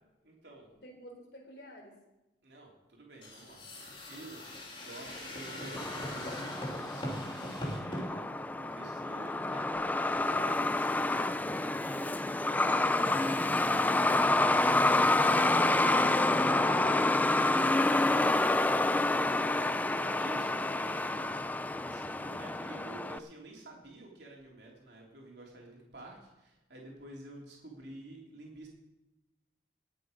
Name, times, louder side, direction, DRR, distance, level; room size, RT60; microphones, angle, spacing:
voice 1, 0.2-0.7 2.4-3.6 4.1-4.4 4.8-18.6 20.2-21.3 21.7-28.7, right 2 dB, 75° right, -2 dB, 3.2 m, -50 dB
voice 2, 0.8-2.0 19.0-20.7 21.0-21.5, equal, 70° left, 1 dB, 3.6 m, -50 dB
sound 1, 3.2-8.0, left 1 dB, 30° left, 2.7 m, -40 dB
Truck, 5.8-23.2, left 2 dB, 10° left, 0.3 m, -28 dB
20.0 x 7.6 x 5.1 m, 0.99 s
head